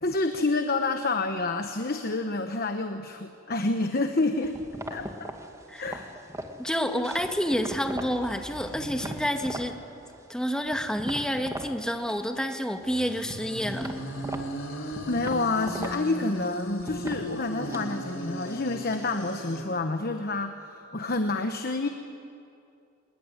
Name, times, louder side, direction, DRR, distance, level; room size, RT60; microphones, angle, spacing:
voice 1, 0.0-4.6 4.9-5.3 5.8-6.2 14.7-21.9, left 2 dB, 50° left, 7 dB, 1.1 m, -28 dB
sound 1, 4.4-8.2 8.6-9.7 10.1-11.7 12.0-12.7 13.0-19.2, right 1 dB, 15° right, 1.9 m, -40 dB
voice 2, 6.6-9.7 10.3-13.9, equal, 5° left, 5 dB, 1.8 m, -29 dB
sound 2, 8.1-9.5 9.8-9.9 12.8-19.6, equal, 90° left, 3.8 m, -37 dB
24.0 x 21.5 x 9.8 m, 2.6 s
head